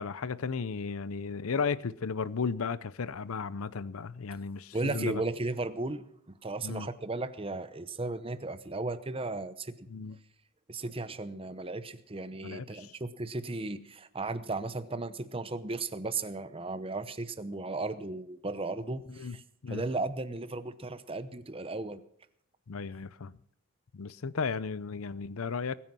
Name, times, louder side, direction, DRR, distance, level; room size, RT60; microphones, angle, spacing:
voice 1, 0.0-5.2 6.6-6.9 9.9-10.2 12.4-12.9 19.1-19.4 19.6-19.8 22.7-23.3 23.9-25.8, left 5 dB, 70° left, 0.6 m, -34 dB
voice 2, 4.7-6.0 6.4-9.7 10.7-22.0, right 2 dB, 25° right, 0.8 m, -35 dB
21.0 x 9.5 x 6.1 m
head